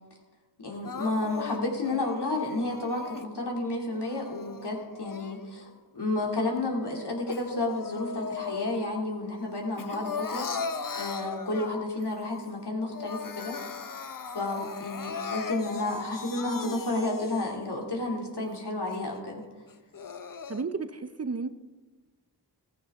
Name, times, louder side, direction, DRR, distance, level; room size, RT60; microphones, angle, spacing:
voice 1, 0.6-13.6 14.3-19.5, left 2 dB, 70° left, -1 dB, 2.7 m, -31 dB
Crying sobbing, 0.8-3.3 3.9-5.7 6.1-9.1 9.4-12.0 12.5-12.6 12.8-17.7 18.2-18.3 18.9-19.0 19.7-20.6, left 5 dB, 50° left, 0.7 m, -38 dB
voice 2, 20.5-21.5, right 4 dB, 40° right, 12 dB, 0.6 m, -32 dB
14.5 x 14.5 x 3.6 m, 1.3 s
wide cardioid pair, 45°, 41 cm